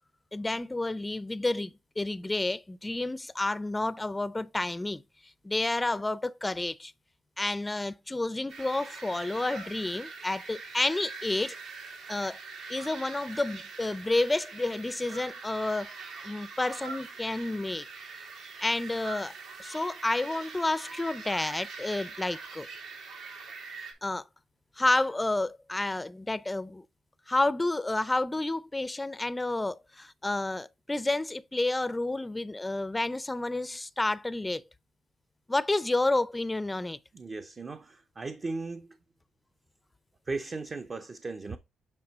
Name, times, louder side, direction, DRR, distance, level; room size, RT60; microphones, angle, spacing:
voice 1, 0.3-5.0 5.4-6.9 7.4-11.6 12.1-12.4 12.7-15.9 16.2-17.9 18.1-18.2 18.6-19.3 19.6-22.7 24.0-24.2 24.8-26.8 27.3-34.6 35.5-37.0, left 2 dB, 15° left, 0.4 m, -30 dB
sound 1, 8.5-23.9, right 4 dB, 80° right, 2.6 m, -43 dB
voice 2, 37.1-38.9 40.3-41.6, right 3 dB, 35° right, 0.6 m, -36 dB
8.6 x 4.4 x 3.0 m
cardioid pair, 90°, 0 cm